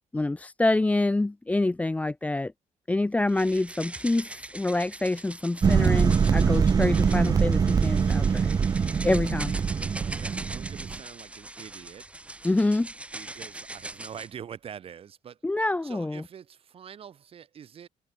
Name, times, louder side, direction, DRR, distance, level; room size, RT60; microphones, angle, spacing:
voice 1, 0.1-2.5 2.9-8.5 9.0-9.5 12.4-12.9 15.4-16.2, left 2 dB, 10° left, 0.9 m, -26 dB
sound 1, 3.3-14.3, right 2 dB, 10° right, 1.6 m, -41 dB
sound 2, 5.6-11.0, right 6 dB, 25° right, 0.8 m, -23 dB
voice 2, 10.0-12.1 13.1-15.4 15.8-17.9, right 8 dB, 45° right, 4.8 m, -45 dB
cardioid pair, 135°, 14 cm